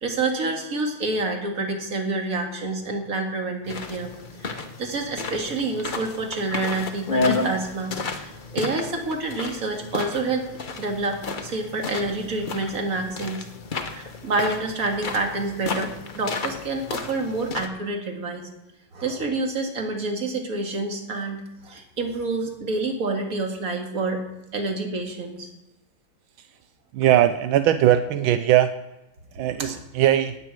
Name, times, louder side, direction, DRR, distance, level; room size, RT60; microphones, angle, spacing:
voice 1, 0.0-4.1 4.4-10.5 10.8-13.4 13.9-18.5 18.9-24.2 24.5-25.5, right 2 dB, 45° right, 2 dB, 2.3 m, -28 dB
sound 1, 3.7-17.7, left 4 dB, 40° left, 0.7 m, -32 dB
voice 2, 26.9-28.7 29.3-30.4, right 12 dB, 80° right, 10 dB, 1.4 m, -20 dB
18.0 x 8.4 x 4.7 m, 0.95 s
omnidirectional pair, 2.2 m